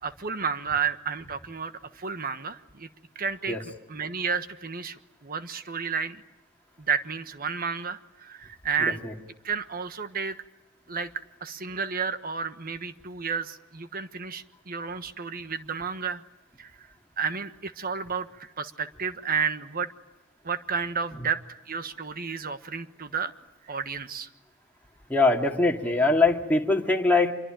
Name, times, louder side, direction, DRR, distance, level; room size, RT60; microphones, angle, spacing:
voice 1, 0.0-2.9 3.1-6.2 6.8-9.0 9.4-10.4 10.9-11.1 11.4-16.2 16.6-16.7 17.2-19.9 20.4-23.3 23.6-24.3, right 5 dB, 45° right, 10 dB, 1.3 m, -31 dB
voice 2, 8.8-9.1 25.1-27.3, left 3 dB, 10° left, 0 dB, 2.5 m, -22 dB
26.5 x 23.0 x 9.1 m, 1.0 s
head